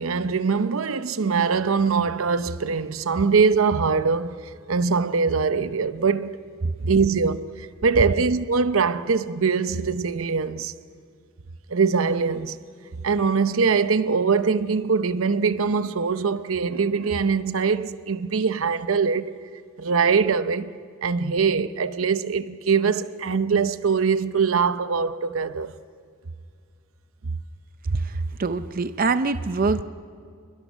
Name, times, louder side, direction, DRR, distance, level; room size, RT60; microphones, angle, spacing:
voice 1, 0.0-4.3 4.7-6.4 6.8-10.7 11.7-12.6 13.0-19.4 19.8-25.7, right 5 dB, 80° right, 0.7 m, -22 dB
voice 2, 27.9-29.8, right 3 dB, 45° right, 0.5 m, -24 dB
27.5 x 22.5 x 6.3 m
head